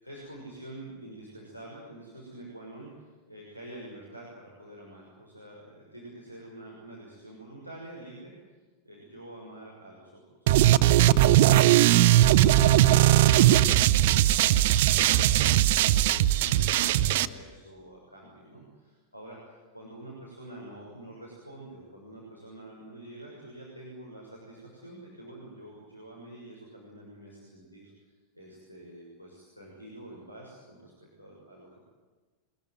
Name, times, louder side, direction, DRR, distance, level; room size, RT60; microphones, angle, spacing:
voice 1, 0.0-8.6 8.8-31.9, right 1 dB, 90° left, -3 dB, 6.2 m, -47 dB
sound 1, 10.5-17.3, right 14 dB, 50° right, 0.8 m, -19 dB
23.5 x 21.0 x 9.3 m, 1.3 s
figure-of-eight pair, 90°, 0 cm